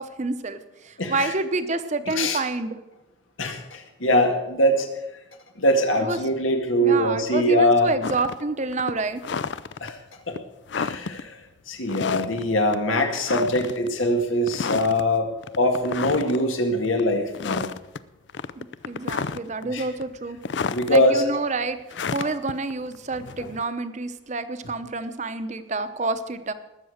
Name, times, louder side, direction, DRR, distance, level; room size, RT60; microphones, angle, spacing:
voice 1, 0.0-2.7 6.0-6.2 6.8-9.2 18.6-20.4 20.9-21.8 22.1-26.5, right 3 dB, 35° right, 11 dB, 0.8 m, -28 dB
voice 2, 1.0-1.3 2.1-2.4 3.4-4.9 5.6-7.9 9.8-10.0 10.3-10.4 10.8-11.4 11.7-15.3 15.6-17.7 19.6-19.9 20.7-21.2 22.2-22.3, equal, 85° left, 4 dB, 2.0 m, -22 dB
sound 1, 8.0-8.4 8.7-9.9 10.3-10.4 10.7-11.2 11.9-12.5 12.7-12.8 13.2-13.9 14.4-15.0 15.4-16.4 16.8-17.0 17.3-18.0 18.3-19.6 20.0-21.0 21.9-23.6, left 5 dB, 60° left, 0.5 m, -31 dB
20.0 x 6.9 x 6.5 m, 0.99 s
head